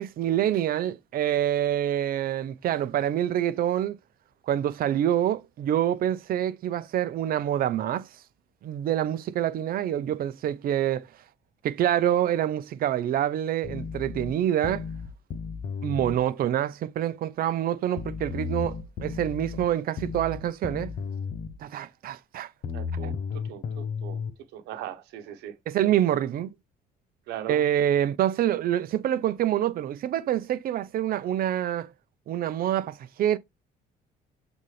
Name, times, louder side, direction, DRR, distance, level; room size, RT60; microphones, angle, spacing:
voice 1, 0.0-4.0 4.5-8.1 8.6-11.1 11.6-14.8 15.8-20.9 21.6-22.5 23.0-23.1 25.7-26.5 27.5-31.9 32.3-33.4, right 11 dB, 60° right, 0.8 m, -26 dB
sound 1, 13.6-16.2 18.0-21.6 22.6-24.3, left 5 dB, 55° left, 1.0 m, -34 dB
voice 2, 22.7-24.2 24.5-25.6 27.3-27.6, right 11 dB, 85° right, 1.1 m, -39 dB
7.3 x 4.0 x 3.3 m
cardioid pair, 110°, 17 cm